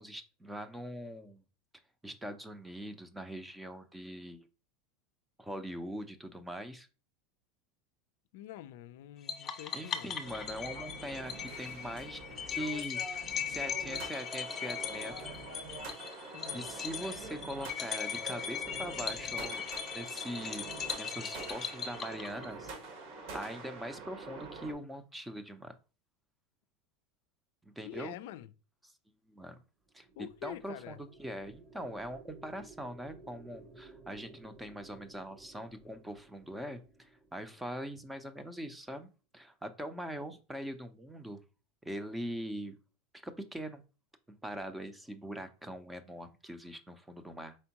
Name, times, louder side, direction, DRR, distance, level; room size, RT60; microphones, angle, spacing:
voice 1, 0.0-1.4 2.0-4.5 5.4-6.9 9.7-12.2 12.5-15.1 16.2-19.6 19.9-22.9 23.3-25.8 27.6-28.2 29.3-29.6 29.9-30.1 30.4-41.4 41.8-42.8 43.1-43.8 44.3-47.6, equal, 5° right, 0.6 m, -42 dB
voice 2, 8.3-10.2 16.3-16.6 27.8-28.5 30.2-31.0, left 13 dB, 70° left, 0.4 m, -46 dB
sound 1, 9.3-22.7, left 7 dB, 30° left, 0.7 m, -39 dB
sound 2, 10.2-24.7, right 3 dB, 65° right, 1.5 m, -46 dB
sound 3, 29.8-38.3, right 3 dB, 30° right, 0.9 m, -57 dB
4.4 x 3.4 x 2.9 m
hypercardioid pair, 105°, 0 cm